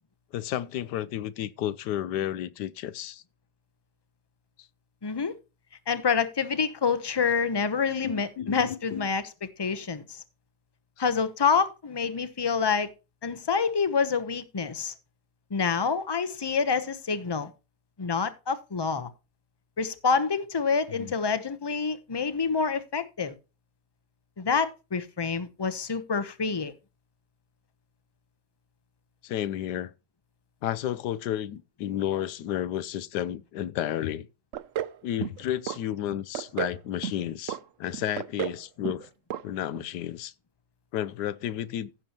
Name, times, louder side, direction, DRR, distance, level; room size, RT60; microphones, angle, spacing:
voice 1, 0.3-3.2 7.2-7.3 8.0-9.1 20.9-21.1 29.2-29.9 30.6-34.3 35.0-39.1 39.4-40.3 40.9-41.9, left 11 dB, 85° left, 1.3 m, -32 dB
voice 2, 5.0-5.3 5.9-9.2 9.6-10.2 11.0-12.9 13.2-14.9 15.5-17.5 18.0-19.1 19.8-23.3 24.4-26.7, left 5 dB, 25° left, 0.5 m, -27 dB
sound 1, 34.5-35.0 35.2-35.8 36.1-36.8 37.0-37.6 37.9-38.6 38.8-39.1 39.3-39.4 39.8-39.9, right 10 dB, 65° right, 0.8 m, -32 dB
15.5 x 7.0 x 2.9 m
omnidirectional pair, 1.8 m